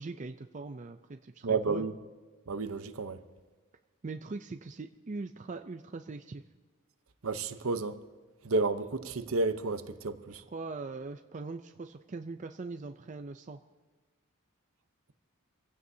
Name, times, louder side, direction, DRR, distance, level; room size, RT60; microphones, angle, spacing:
voice 1, 0.0-1.8 4.0-6.4 10.3-13.6, right 3 dB, 35° right, 0.4 m, -41 dB
voice 2, 1.4-1.9 2.5-3.2 7.2-8.0 8.4-10.4, right 3 dB, 70° right, 0.8 m, -31 dB
26.5 x 15.5 x 2.8 m
head